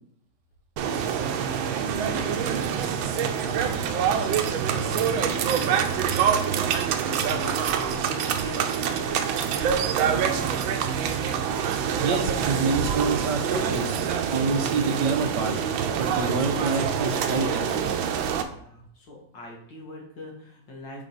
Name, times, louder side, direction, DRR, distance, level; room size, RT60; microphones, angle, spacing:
sound 1, 0.8-18.4, right 7 dB, 90° right, 1.4 m, -26 dB
voice 1, 1.0-1.5 1.7-11.0 18.5-21.0, left 2 dB, 65° left, -1 dB, 2.2 m, -43 dB
voice 2, 12.0-14.0 14.3-15.5 16.0-17.9, right 4 dB, 65° right, 3 dB, 1.6 m, -27 dB
8.7 x 3.9 x 4.1 m, 0.68 s
omnidirectional pair, 2.1 m